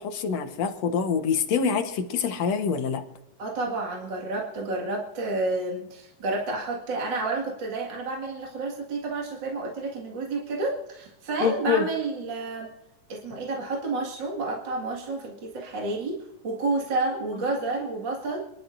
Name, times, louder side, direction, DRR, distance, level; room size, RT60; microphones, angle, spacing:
voice 1, 0.0-3.0 11.4-11.9, left 6 dB, 65° left, 6 dB, 2.3 m, -25 dB
voice 2, 3.4-12.7 13.1-18.4, right 3 dB, 40° right, -2 dB, 2.5 m, -30 dB
27.5 x 12.0 x 2.6 m, 0.87 s
omnidirectional pair, 3.4 m